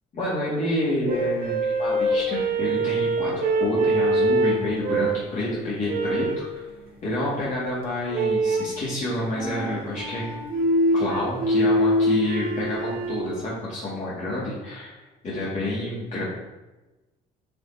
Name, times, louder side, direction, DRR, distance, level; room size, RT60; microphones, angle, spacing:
voice 1, 0.1-6.6 7.0-10.2 10.9-16.2, left 1 dB, 50° left, -9 dB, 2.7 m, -28 dB
sound 1, 1.1-5.3 5.9-6.5 8.1-8.8 9.3-13.3, right 1 dB, 60° right, 1.7 m, -24 dB
9.6 x 5.5 x 3.0 m, 1.1 s
cardioid pair, 110°, 17 cm